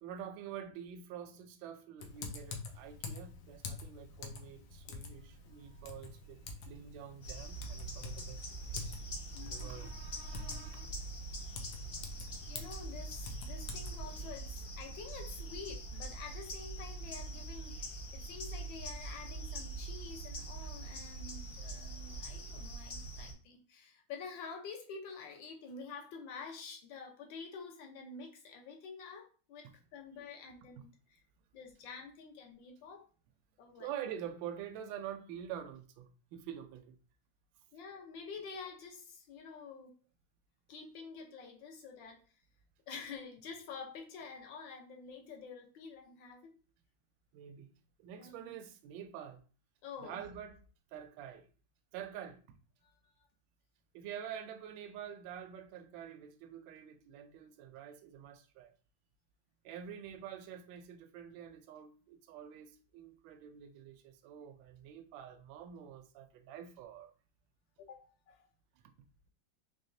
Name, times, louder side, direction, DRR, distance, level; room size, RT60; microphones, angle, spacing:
voice 1, 0.0-8.4 8.7-9.0 9.3-10.9 33.8-36.9 47.3-47.7 48.0-49.4 50.0-50.6 50.9-51.5 51.9-52.4 53.9-58.7 59.6-67.1, right 9 dB, 75° right, 1.3 m, -47 dB
Typing, 2.0-14.3, left 4 dB, 90° left, 1.6 m, -47 dB
sound 1, 7.2-23.3, right 2 dB, 45° left, 1.4 m, -43 dB
voice 2, 9.3-9.7 12.5-31.2 31.5-33.1 33.6-33.9 37.7-39.9 40.7-42.2 42.9-46.6 48.2-48.6 49.8-50.2 52.8-53.1 67.8-68.5, left 5 dB, 70° left, 1.6 m, -48 dB
4.0 x 3.4 x 2.6 m
omnidirectional pair, 2.2 m